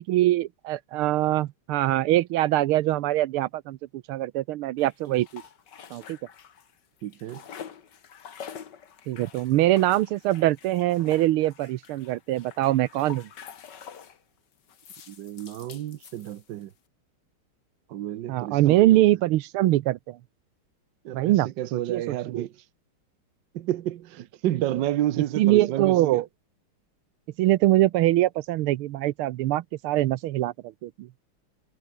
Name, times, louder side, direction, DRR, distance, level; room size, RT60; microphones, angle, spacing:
voice 1, 0.0-5.4 5.9-6.2 9.1-13.3 18.3-20.2 21.1-22.0 22.3-22.5 25.4-26.3 27.4-31.1, right 15 dB, 85° right, 1.6 m, -23 dB
sound 1, 4.8-6.7 7.0-14.2 14.7-16.7, left 8 dB, 55° left, 2.1 m, -46 dB
voice 2, 7.0-7.4 15.1-16.7 17.9-19.0 21.0-22.5 23.5-26.2, right 13 dB, 65° right, 1.4 m, -30 dB
omnidirectional pair, 2.3 m